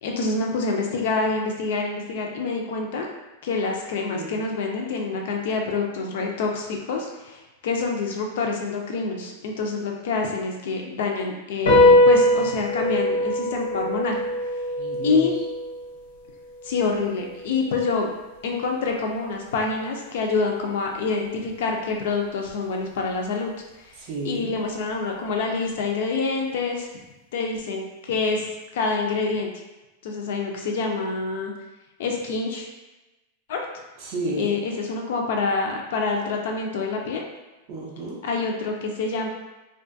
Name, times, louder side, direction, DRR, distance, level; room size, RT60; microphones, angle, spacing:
voice 1, 0.0-3.1 3.4-14.2 15.0-15.3 16.6-18.1 18.4-23.5 24.2-26.9 27.3-28.4 28.7-29.5 30.0-31.5 32.0-32.7 33.5-33.6 34.4-37.2 38.2-39.3, left 4 dB, 55° left, 1 dB, 0.3 m, -26 dB
voice 2, 4.1-4.4 14.8-15.3 23.9-24.6 34.0-34.6 37.7-38.2, right 2 dB, 30° right, -4 dB, 0.4 m, -32 dB
sound 1, 11.7-18.4, left 1 dB, 85° left, 0.7 m, -22 dB
2.5 x 2.3 x 2.5 m, 1.1 s
supercardioid pair, 180°, 0 cm